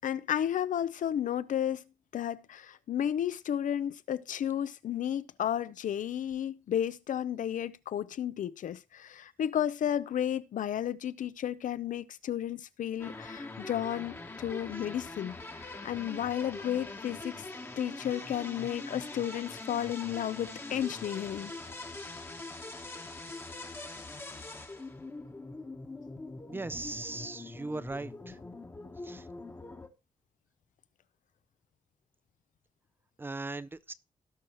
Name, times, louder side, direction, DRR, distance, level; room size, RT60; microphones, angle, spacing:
voice 1, 0.0-1.8 2.1-17.4 17.8-21.5, left 10 dB, 75° left, 0.7 m, -33 dB
sound 1, 13.0-29.9, left 2 dB, 15° left, 1.1 m, -43 dB
voice 2, 26.4-28.4 29.0-29.3 33.2-33.9, right 2 dB, 15° right, 0.4 m, -39 dB
17.5 x 6.3 x 3.0 m
wide cardioid pair, 170°, 13 cm